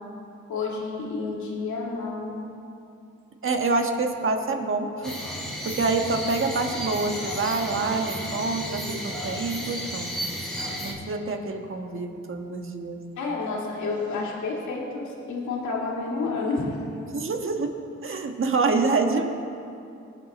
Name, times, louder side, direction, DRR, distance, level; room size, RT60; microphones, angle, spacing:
voice 1, 0.5-2.3 13.2-16.7, left 3 dB, 80° left, -3 dB, 2.4 m, -30 dB
voice 2, 3.4-5.2 5.6-10.1 10.8-13.0 17.1-19.3, right 3 dB, 45° right, 4 dB, 1.4 m, -26 dB
sound 1, 5.0-10.9, equal, ahead, 3.1 m, -33 dB
19.5 x 7.4 x 4.2 m, 2.7 s
cardioid pair, 65°, 29 cm